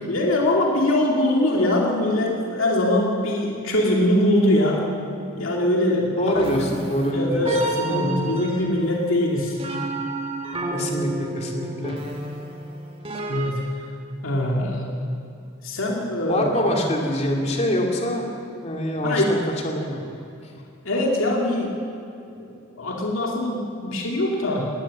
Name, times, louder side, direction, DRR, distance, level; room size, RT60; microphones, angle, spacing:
voice 1, 0.1-4.8 5.3-6.8 7.1-9.6 13.3-13.7 14.2-14.9 15.6-16.5 19.0-19.4 20.8-21.8 22.8-24.7, left 1 dB, 75° left, -1 dB, 2.5 m, -22 dB
voice 2, 6.2-7.6 7.9-8.2 10.7-12.0 16.3-18.2 18.6-20.0, equal, 30° left, 0 dB, 3.1 m, -25 dB
sound 1, 6.3-13.5, right 2 dB, 30° right, 2.4 m, -32 dB
20.0 x 18.5 x 7.6 m, 2.6 s
head